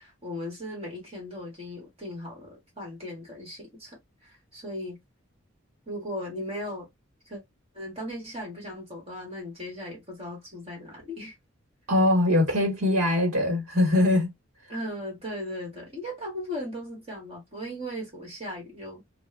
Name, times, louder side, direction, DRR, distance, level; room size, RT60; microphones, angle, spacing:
voice 1, 0.0-5.0 5.9-6.9 7.3-7.4 7.7-11.3 14.7-19.0, left 1 dB, 30° right, 1.7 m, -37 dB
voice 2, 11.9-14.3, left 1 dB, 85° right, 1.2 m, -22 dB
3.3 x 2.3 x 3.3 m
head